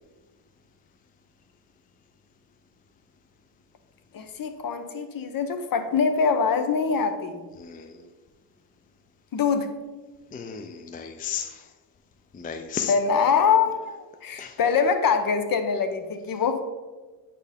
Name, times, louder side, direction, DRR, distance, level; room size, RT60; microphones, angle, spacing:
voice 1, 4.1-7.4 9.3-9.7 12.9-16.6, left 6 dB, 45° left, 8 dB, 0.8 m, -24 dB
voice 2, 7.6-8.1 10.3-11.7 12.3-12.9 14.4-14.6, left 7 dB, 20° left, 6 dB, 0.4 m, -34 dB
8.9 x 4.5 x 3.5 m, 1.3 s
cardioid pair, 85°, 46 cm